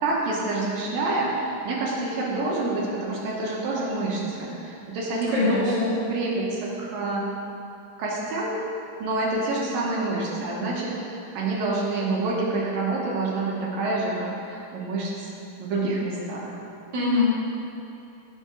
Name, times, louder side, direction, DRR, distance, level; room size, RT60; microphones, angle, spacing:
voice 1, 0.0-7.3 8.0-8.6 9.0-15.3 15.6-16.5, right 2 dB, 85° right, -4 dB, 3.1 m, -27 dB
voice 2, 5.3-5.9 16.9-17.4, left 3 dB, 35° right, -8 dB, 2.8 m, -23 dB
10.5 x 7.2 x 5.3 m, 2.7 s
omnidirectional pair, 4.0 m